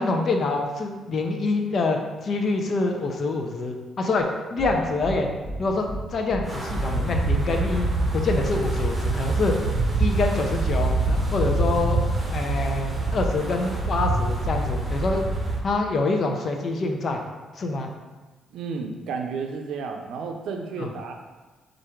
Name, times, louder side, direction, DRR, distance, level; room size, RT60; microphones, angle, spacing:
voice 1, 0.0-9.5 10.0-12.0 12.3-15.2 15.6-17.2 17.6-17.9 20.8-20.9, left 3 dB, 50° left, 3 dB, 0.6 m, -26 dB
sound 1, 4.6-4.7 5.0-5.1 5.4-5.6 5.9-6.0 6.3-6.4 6.7-6.9 7.2-7.3 7.6-8.1 8.4-8.6 8.9-9.0 9.3-9.4 9.7-9.9 10.2-10.3 10.6-10.7 11.0-11.2, right 1 dB, 20° left, 1.0 m, -32 dB
Wind, 6.5-15.6, right 2 dB, 15° right, 1.0 m, -25 dB
voice 2, 18.5-21.1, right 5 dB, 80° right, 3 dB, 0.5 m, -32 dB
4.7 x 2.6 x 4.4 m, 1.3 s
cardioid pair, 90°, 0 cm